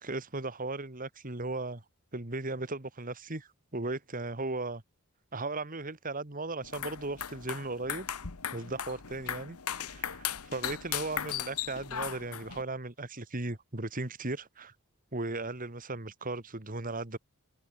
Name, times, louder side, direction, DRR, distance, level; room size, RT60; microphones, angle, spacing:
voice 1, 0.0-1.8 2.1-4.8 5.3-8.1 8.5-14.7 15.1-17.2, right 2 dB, 40° right, 2.1 m, -37 dB
sound 1, 6.6-12.6, left 9 dB, 80° left, 1.3 m, -37 dB
head